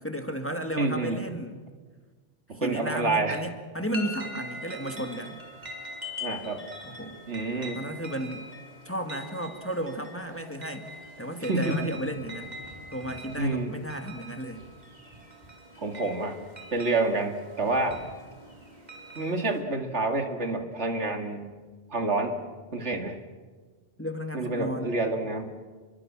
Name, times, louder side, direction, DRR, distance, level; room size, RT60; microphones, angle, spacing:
voice 1, 0.0-1.6 2.5-5.4 6.8-7.2 7.8-8.5 8.9-10.9 11.2-12.6 12.9-14.6 24.0-25.0, equal, 10° left, 5 dB, 2.0 m, -34 dB
voice 2, 0.8-1.2 2.5-3.4 6.2-6.6 7.3-7.8 11.5-11.8 13.4-13.7 15.8-16.4 16.7-18.0 19.2-21.4 21.9-22.4 22.7-23.1 24.3-25.5, right 2 dB, 70° right, 5 dB, 2.6 m, -28 dB
sound 1, 3.9-19.6, left 1 dB, 35° right, 3.9 m, -43 dB
28.0 x 23.0 x 7.5 m, 1.4 s
omnidirectional pair, 1.2 m